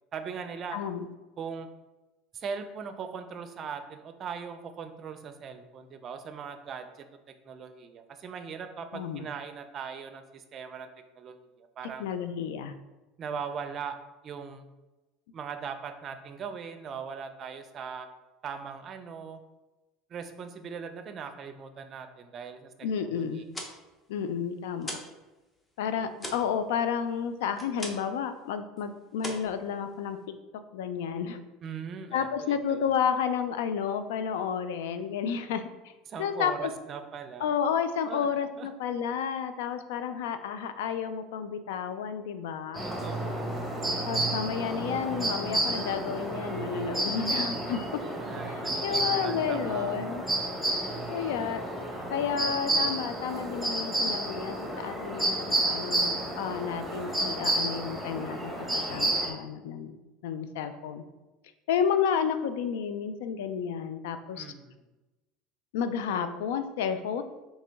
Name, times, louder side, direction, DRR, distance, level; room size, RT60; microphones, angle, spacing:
voice 1, 0.1-0.8 1.4-1.7 2.3-7.1 7.5-10.9 11.2-12.1 13.2-14.0 14.2-14.7 15.3-18.1 18.4-19.4 20.1-22.7 23.0-23.5 31.6-32.9 36.1-37.5 38.1-38.3 38.6-38.7 42.8-43.5 48.0-50.2 64.3-64.7, right 6 dB, 45° right, 8 dB, 0.4 m, -40 dB
voice 2, 0.7-1.1 8.9-9.3 12.0-12.7 22.8-23.4 24.1-24.9 25.8-30.2 30.7-31.4 32.1-35.9 36.2-36.7 37.4-42.9 44.0-48.0 48.5-50.3 51.1-51.8 52.1-60.0 60.2-61.0 61.7-64.5 65.7-67.2, left 7 dB, 80° left, 10 dB, 0.3 m, -31 dB
sound 1, 23.3-25.2 25.5-28.2 28.5-28.8 29.2-30.3, equal, 15° left, 0.7 m, -41 dB
sound 2, 42.7-59.3, right 1 dB, 5° right, 1.1 m, -31 dB
3.7 x 3.1 x 3.4 m, 1.1 s
hypercardioid pair, 90°, 0 cm